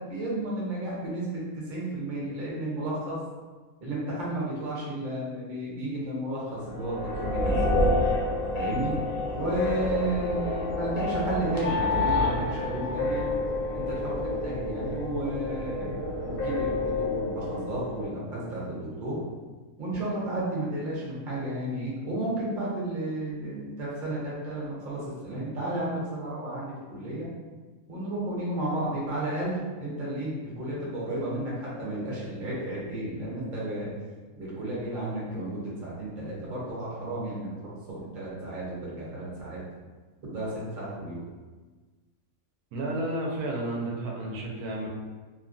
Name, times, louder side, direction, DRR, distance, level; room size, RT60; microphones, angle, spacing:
voice 1, 0.0-1.4 1.7-3.2 3.8-7.7 8.5-8.9 9.3-13.2 13.7-19.1 19.8-27.3 27.9-33.9 34.4-37.7 38.1-39.6 40.2-41.2, right 1 dB, 45° right, -6 dB, 0.8 m, -33 dB
sound 1, 6.7-18.1, left 2 dB, 60° left, 0.6 m, -28 dB
voice 2, 42.7-44.9, right 1 dB, 85° right, -1 dB, 1.1 m, -31 dB
2.9 x 2.3 x 2.5 m, 1.4 s
omnidirectional pair, 1.5 m